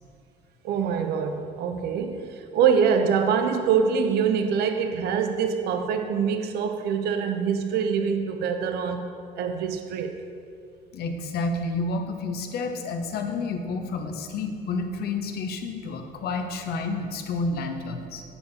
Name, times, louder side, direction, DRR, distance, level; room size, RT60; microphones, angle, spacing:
voice 1, 0.6-10.2, right 6 dB, 70° right, 7 dB, 0.6 m, -25 dB
voice 2, 10.9-18.2, left 3 dB, 70° left, 5 dB, 0.9 m, -30 dB
7.9 x 7.1 x 4.2 m, 2.4 s
cardioid pair, 110°, 17 cm